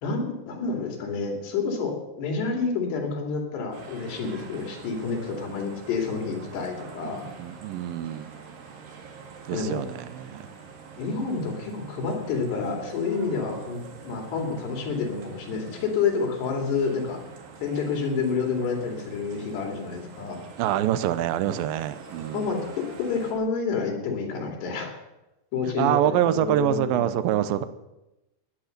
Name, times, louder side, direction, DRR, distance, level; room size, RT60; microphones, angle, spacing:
voice 1, 0.0-7.2 9.5-9.8 11.0-17.2 17.6-20.4 22.3-24.9 25.5-27.1, left 5 dB, 75° left, 2 dB, 4.8 m, -29 dB
sound 1, 3.7-23.3, right 5 dB, 60° right, 3.4 m, -45 dB
voice 2, 7.0-8.3 9.5-10.5 20.6-22.5 25.8-27.6, right 12 dB, 75° right, 12 dB, 2.2 m, -26 dB
17.5 x 10.5 x 6.6 m, 0.98 s
omnidirectional pair, 4.9 m